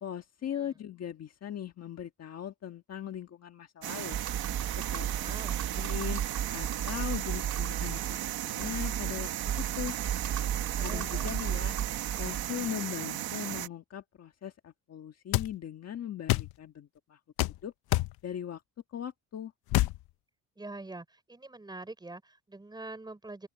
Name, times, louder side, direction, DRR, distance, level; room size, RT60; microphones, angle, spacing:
voice 1, 0.0-4.2 4.9-5.4 5.8-6.2 6.5-8.2 8.4-10.0 10.8-11.8 12.2-17.2 17.6-17.7 18.2-18.6 18.9-19.5, left 10 dB, 45° left, 1.6 m, -39 dB
sound 1, 3.8-13.7, right 13 dB, 80° right, 1.5 m, -36 dB
Computer keyboard, 4.1-12.7, right 9 dB, 50° right, 5.1 m, -34 dB
voice 2, 5.1-5.7 10.8-11.3 20.6-23.5, right 2 dB, 10° right, 5.9 m, -45 dB
sound 2, 15.3-15.5 16.3-16.5 17.4-17.6 17.9-18.1 19.7-20.0, left 17 dB, 80° left, 0.6 m, -26 dB
open air
cardioid pair, 175°, 36 cm